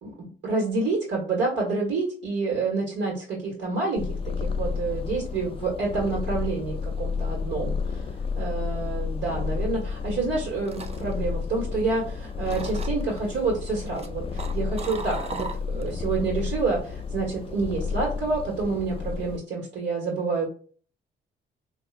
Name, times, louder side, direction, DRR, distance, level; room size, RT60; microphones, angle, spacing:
voice 1, 0.0-8.0 8.3-20.5, right 3 dB, 70° right, -2 dB, 1.6 m, -28 dB
Purr, 4.0-19.4, left 5 dB, 30° left, 0.5 m, -31 dB
sound 1, 10.5-12.1 12.4-13.2 13.7-16.0 16.3-16.7, right 3 dB, 30° right, 0.5 m, -38 dB
4.6 x 2.7 x 2.5 m, 0.42 s
cardioid pair, 90°, 20 cm